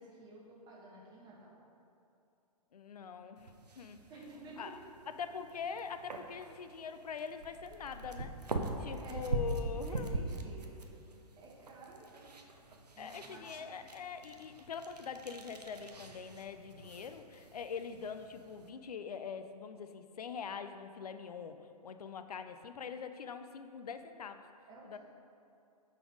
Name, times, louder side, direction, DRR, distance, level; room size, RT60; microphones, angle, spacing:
voice 1, 0.0-1.6 3.7-3.8 4.1-4.8 8.9-9.2 9.6-11.0 11.4-12.3 12.9-13.7 24.7-25.0, right 3 dB, 20° right, -4 dB, 1.3 m, -52 dB
voice 2, 2.7-4.1 4.4-4.8 5.1-8.3 8.8-10.2 13.0-24.5 24.8-25.0, left 6 dB, 75° left, 9 dB, 0.4 m, -43 dB
sound 1, 3.4-18.7, right 2 dB, 85° right, 0.6 m, -43 dB
5.7 x 4.0 x 5.0 m, 2.7 s
figure-of-eight pair, 115°, 20 cm